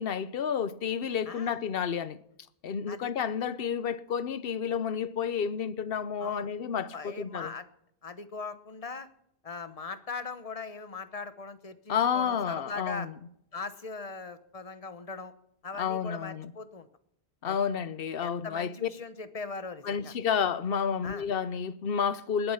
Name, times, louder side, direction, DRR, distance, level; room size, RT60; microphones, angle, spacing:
voice 1, 0.0-2.2 2.6-7.5 11.9-13.1 15.8-16.5 17.4-18.9 19.8-22.5, left 7 dB, 65° left, 0.9 m, -30 dB
voice 2, 1.3-1.6 2.9-3.1 6.2-6.5 6.9-7.7 8.0-9.1 9.4-13.1 13.5-15.3 15.6-16.9 17.4-17.6 18.2-20.1 21.0-21.2, left 4 dB, 35° left, 1.0 m, -40 dB
20.5 x 8.0 x 5.7 m
omnidirectional pair, 1.0 m